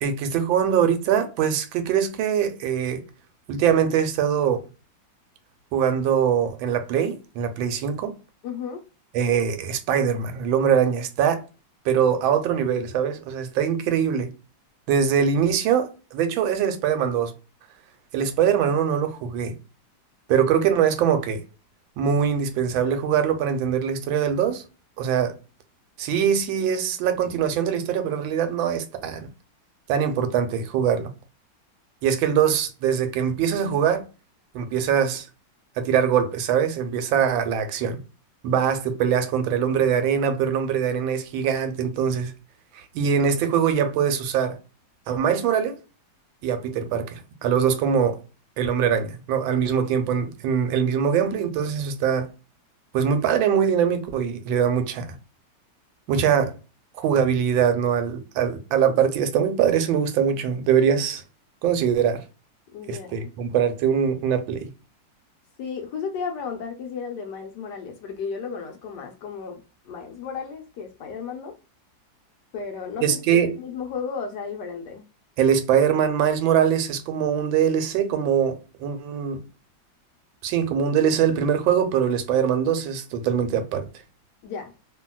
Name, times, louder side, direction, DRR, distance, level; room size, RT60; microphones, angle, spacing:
voice 1, 0.0-3.0 3.5-4.6 5.7-8.1 9.1-11.4 11.8-14.3 14.9-17.3 18.1-19.5 20.3-21.4 22.0-24.6 25.0-25.4 26.0-29.3 29.9-31.1 32.0-34.0 34.5-35.3 35.8-38.0 38.4-42.3 42.7-44.6 45.1-45.8 46.4-48.2 48.6-52.3 52.9-55.1 56.1-56.5 57.0-61.2 61.6-62.2 62.9-64.7 73.0-73.5 75.4-79.4 80.4-83.9, right 8 dB, 85° right, 1.4 m, -22 dB
voice 2, 8.4-8.8 62.7-63.3 65.6-71.6 72.5-75.1 84.4-84.7, left 6 dB, 70° left, 1.1 m, -34 dB
2.8 x 2.7 x 2.2 m
omnidirectional pair, 2.1 m